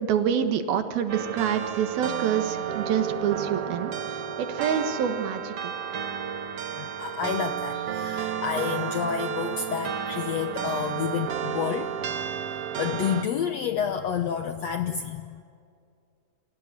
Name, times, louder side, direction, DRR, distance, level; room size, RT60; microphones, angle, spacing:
voice 1, 0.0-3.9 4.4-5.7, right 8 dB, 85° right, 8 dB, 3.3 m, -26 dB
sound 1, 1.1-13.2, right 8 dB, 55° right, 1.9 m, -32 dB
voice 2, 6.7-12.1 12.8-15.4, left 8 dB, 75° left, 7 dB, 1.6 m, -30 dB
28.5 x 24.5 x 6.8 m, 2.3 s
omnidirectional pair, 4.2 m